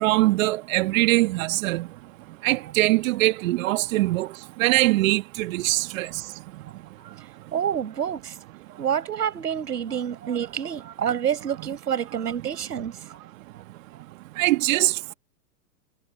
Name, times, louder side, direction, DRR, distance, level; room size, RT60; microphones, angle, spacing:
voice 1, 0.0-1.9 2.4-4.3 4.6-6.1 14.4-15.1, right 18 dB, 55° right, 1.6 m, -22 dB
voice 2, 7.5-8.4 8.8-13.2, right 8 dB, 75° right, 5.7 m, -28 dB
hypercardioid pair, 105°, 48 cm